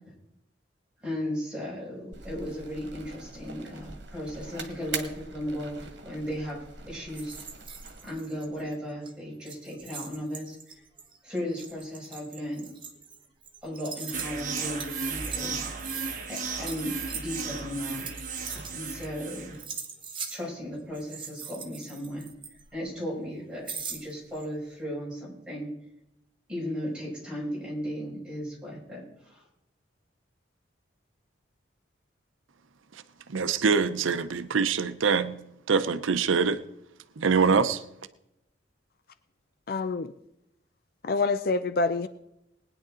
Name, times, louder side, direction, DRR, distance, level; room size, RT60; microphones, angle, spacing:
voice 1, 1.0-5.8 6.0-6.6 6.9-7.4 8.0-10.8 11.2-12.7 13.6-15.6 16.3-18.1 18.5-19.6 20.3-22.3 22.7-25.7 26.5-29.5, equal, 5° right, 5.7 m, -36 dB
sound 1, 2.1-8.1, right 4 dB, 60° right, 1.7 m, -42 dB
sound 2, 7.1-8.7 9.0-9.1 9.4-19.3 19.5-20.4 20.9-22.9 23.7-24.5, right 6 dB, 25° right, 1.3 m, -41 dB
sound 3, 14.1-19.6, right 4 dB, 45° right, 1.5 m, -35 dB
voice 2, 33.3-35.4 35.7-36.6 37.2-37.8, right 5 dB, 90° right, 0.7 m, -24 dB
voice 3, 39.7-40.1 41.0-42.1, left 3 dB, 50° left, 0.5 m, -26 dB
20.0 x 10.0 x 3.8 m
head